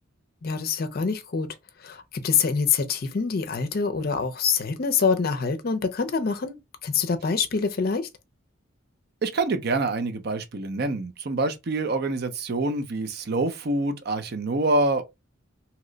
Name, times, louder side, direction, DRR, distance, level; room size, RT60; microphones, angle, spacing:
voice 1, 0.4-1.5 1.8-8.1, left 5 dB, 50° left, 0.5 m, -25 dB
voice 2, 9.2-15.0, right 2 dB, 50° right, 0.5 m, -26 dB
2.9 x 2.1 x 3.8 m
head